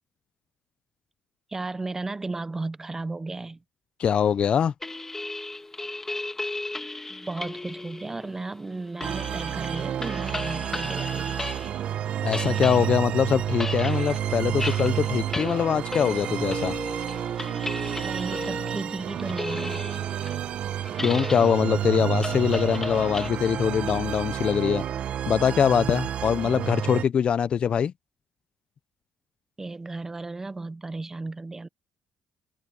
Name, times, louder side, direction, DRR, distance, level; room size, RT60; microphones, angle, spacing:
voice 1, 1.5-3.6 7.1-11.5 18.0-19.8 29.6-31.7, right 3 dB, 20° right, 0.9 m, -34 dB
voice 2, 4.0-4.7 12.2-16.7 21.0-24.8 25.3-27.9, left 8 dB, 50° left, 0.7 m, -23 dB
sound 1, 4.8-11.9 12.1-23.3, left 2 dB, 15° left, 1.9 m, -36 dB
sound 2, 9.0-27.0, right 10 dB, 60° right, 1.1 m, -30 dB
cardioid pair, 100°, 2 cm